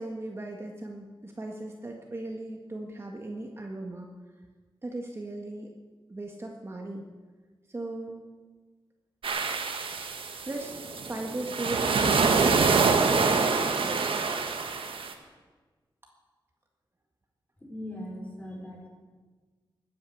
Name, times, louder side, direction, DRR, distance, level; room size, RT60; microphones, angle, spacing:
voice 1, 0.0-4.1 4.8-5.7 6.1-7.0 7.7-8.2 10.4-12.6 13.1-14.0, right 2 dB, 30° right, 1 dB, 1.6 m, -37 dB
sound 1, 9.2-15.1, right 4 dB, 80° right, 1.6 m, -26 dB
voice 2, 17.6-18.9, left 1 dB, 15° left, -1 dB, 4.9 m, -39 dB
21.5 x 9.6 x 7.1 m, 1.4 s
wide cardioid pair, 110°, 9 cm